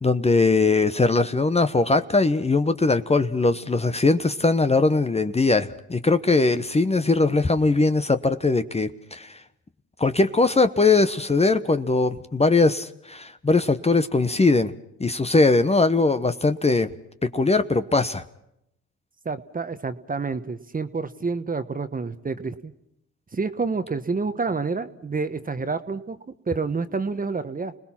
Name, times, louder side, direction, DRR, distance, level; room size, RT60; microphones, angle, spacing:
voice 1, 0.0-9.4 10.0-14.7 15.0-16.9 17.2-18.2, left 3 dB, 20° left, 10 dB, 1.0 m, -20 dB
voice 2, 19.2-22.7 23.3-26.2 26.5-27.7, right 4 dB, 25° right, 11 dB, 1.3 m, -28 dB
30.0 x 19.0 x 6.0 m, 0.80 s
supercardioid pair, 65°, 33 cm